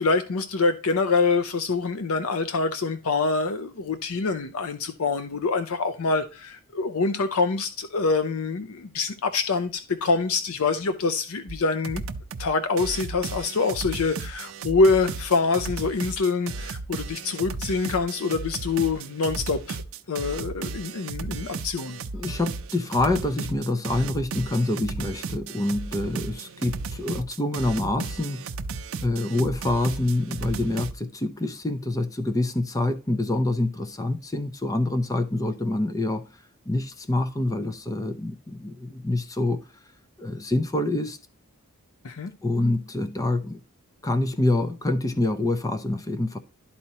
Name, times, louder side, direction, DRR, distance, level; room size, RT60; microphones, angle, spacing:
voice 1, 0.0-12.0 12.4-19.8 20.1-22.0 42.0-42.3, left 4 dB, 75° left, 0.6 m, -25 dB
sound 1, 11.5-11.6 11.8-12.5 12.8-30.9, right 4 dB, 65° right, 0.5 m, -35 dB
voice 2, 22.1-28.4 29.0-36.2 36.7-39.6 40.2-41.2 42.4-43.6 44.0-46.4, left 2 dB, 15° left, 0.5 m, -26 dB
12.0 x 4.2 x 2.8 m
head